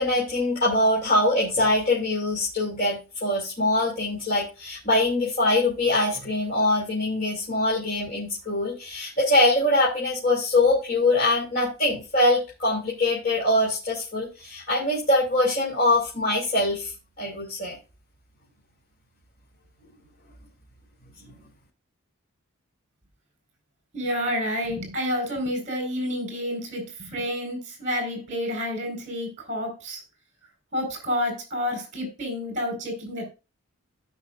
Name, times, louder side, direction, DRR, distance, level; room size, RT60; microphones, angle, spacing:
voice 1, 0.0-16.9 17.2-17.8 21.2-21.4, left 2 dB, 40° left, -5 dB, 2.7 m, -23 dB
voice 2, 23.9-30.0 30.7-33.3, left 1 dB, 35° right, 4 dB, 4.5 m, -29 dB
16.0 x 5.6 x 2.4 m, 0.29 s
head